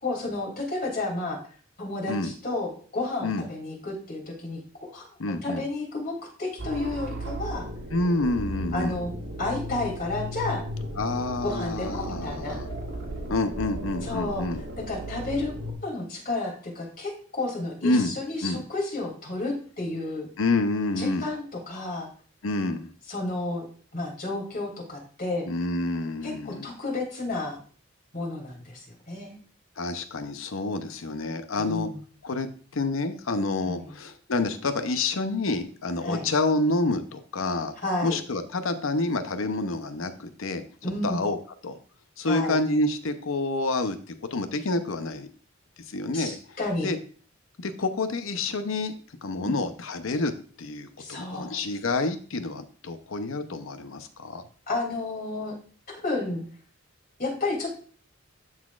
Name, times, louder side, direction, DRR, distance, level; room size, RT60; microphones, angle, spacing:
voice 1, 0.0-1.4 1.8-5.0 5.4-7.7 8.7-10.6 11.4-12.6 14.0-14.4 14.8-15.5 15.8-20.3 21.0-22.1 23.1-23.6 23.9-25.5 26.2-27.6 28.1-29.4 31.6-32.0 33.6-33.9 36.0-36.3 37.8-38.2 40.8-41.2 42.3-42.6 46.1-46.9 49.4-49.5 51.0-51.6 54.7-55.5 55.9-56.4 57.2-57.7, left 2 dB, 45° left, -1 dB, 2.8 m, -31 dB
voice 2, 5.2-5.6 7.9-9.0 11.0-12.7 13.3-14.6 17.8-18.1 18.4-18.6 20.4-21.3 22.4-22.9 25.4-26.7 29.8-31.9 32.2-37.7 38.0-40.6 41.0-41.4 41.6-41.8 42.2-45.3 45.9-46.4 46.8-47.0 47.6-48.9 49.2-50.3 50.6-54.4, left 2 dB, 80° left, 9 dB, 0.7 m, -28 dB
sound 1, 6.6-15.7, equal, 75° right, 1.4 m, -35 dB
12.0 x 4.1 x 2.4 m, 0.43 s
head